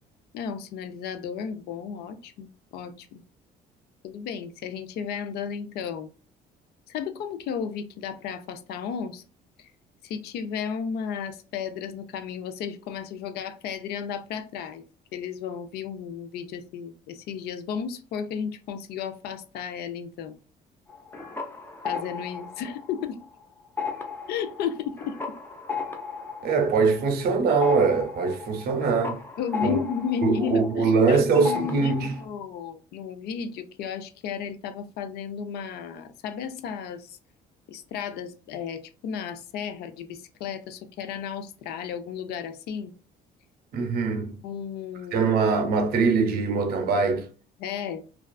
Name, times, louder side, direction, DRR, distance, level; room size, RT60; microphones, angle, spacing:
voice 1, 0.3-3.2 4.0-6.1 6.9-9.2 9.6-9.7 10.0-14.8 15.1-20.4 21.8-23.2 24.3-25.2 29.4-37.2 37.7-42.9 44.4-45.3 47.6-48.0, left 7 dB, 75° left, 0.4 m, -33 dB
sound 1, 20.9-23.3 23.6-31.1 31.4-32.3, left 5 dB, 10° left, 0.5 m, -36 dB
voice 2, 26.4-29.2 29.6-29.8 30.2-32.2 43.7-44.4 45.1-47.3, right 4 dB, 65° right, 0.6 m, -22 dB
2.4 x 2.3 x 2.2 m
cardioid pair, 110°, 17 cm